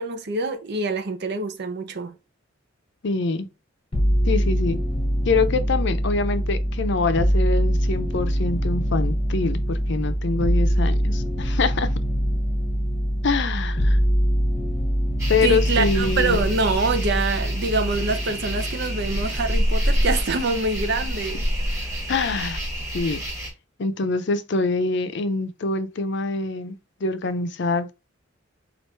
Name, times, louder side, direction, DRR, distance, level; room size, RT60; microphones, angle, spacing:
voice 1, 0.0-2.1 15.4-21.5, right 3 dB, 60° right, 0.7 m, -25 dB
voice 2, 3.0-3.5 4.3-4.8 5.3-11.9 13.2-14.0 15.3-16.4 22.1-22.6 22.9-23.2 23.8-26.8 27.0-27.9, left 3 dB, 65° left, 0.6 m, -25 dB
sound 1, 3.9-21.4 21.7-22.5, equal, 25° left, 0.9 m, -24 dB
sound 2, 15.2-23.5, equal, 15° right, 2.5 m, -28 dB
4.5 x 2.5 x 4.3 m
head